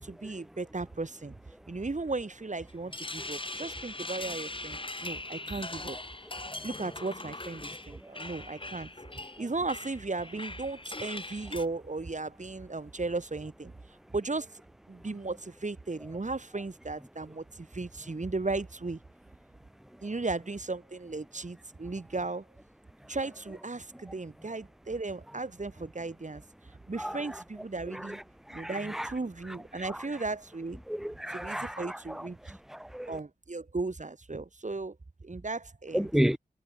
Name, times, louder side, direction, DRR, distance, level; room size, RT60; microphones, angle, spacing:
voice 1, 0.0-1.4 1.7-6.0 6.6-8.9 9.4-13.7 14.1-14.5 14.9-19.0 20.0-22.4 23.1-26.4 26.9-28.2 28.5-30.8 31.3-32.4 33.1-35.0 35.2-36.1, right 3 dB, 45° right, 6.9 m, -36 dB
sound 1, 2.7-11.7, left 2 dB, 30° left, 4.3 m, -40 dB
voice 2, 28.5-29.1 30.9-32.2 32.7-33.2 35.9-36.4, equal, ahead, 1.2 m, -31 dB
cardioid pair, 50°, 17 cm